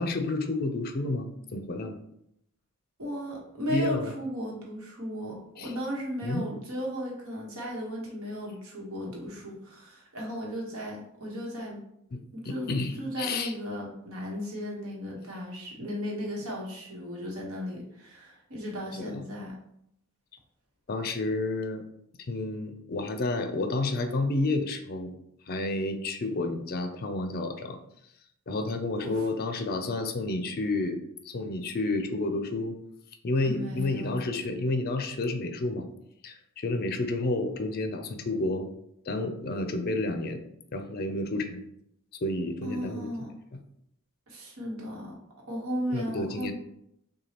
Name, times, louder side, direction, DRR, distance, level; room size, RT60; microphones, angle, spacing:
voice 1, 0.0-2.0 3.7-4.1 5.6-5.7 6.2-6.5 12.1-12.2 12.4-13.5 18.9-19.2 20.9-21.8 22.3-25.1 25.5-27.8 28.5-31.0 31.2-32.8 33.2-35.9 36.2-38.7 39.1-40.4 40.7-41.6 42.2-43.1 45.9-46.5, left 2 dB, 45° left, 7 dB, 0.4 m, -30 dB
voice 2, 3.0-11.8 12.3-12.7 13.0-19.6 29.0-29.2 33.4-34.2 42.6-43.3 44.3-45.2 45.5-46.5, equal, 75° right, -2 dB, 1.1 m, -35 dB
6.1 x 2.3 x 2.9 m, 0.76 s
head